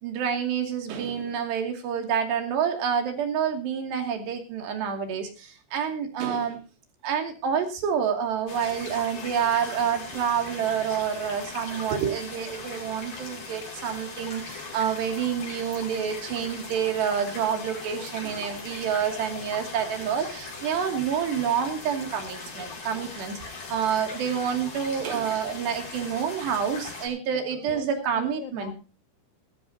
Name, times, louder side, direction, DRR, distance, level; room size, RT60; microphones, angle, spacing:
voice 1, 0.0-6.6 7.0-23.4 23.7-28.7, right 8 dB, 80° right, 4 dB, 4.8 m, -28 dB
sound 1, 8.5-27.1, left 3 dB, 65° left, 7.4 m, -39 dB
voice 2, 27.2-28.7, left 11 dB, 90° left, 10 dB, 1.7 m, -40 dB
19.5 x 14.5 x 2.9 m, 0.32 s
omnidirectional pair, 4.8 m